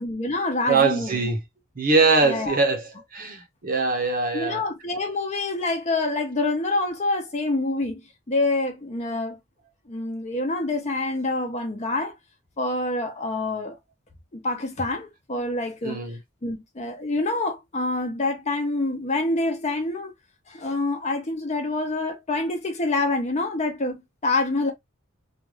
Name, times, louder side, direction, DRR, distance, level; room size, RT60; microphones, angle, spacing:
voice 1, 0.0-1.3 2.2-2.6 4.3-8.0 8.3-9.4 9.9-12.1 12.6-13.8 14.3-16.0 16.4-20.1 20.5-24.7, left 2 dB, 35° left, 0.7 m, -26 dB
voice 2, 0.6-1.4 1.8-4.7 15.8-16.2, right 4 dB, 45° right, 0.8 m, -22 dB
2.4 x 2.4 x 3.1 m
head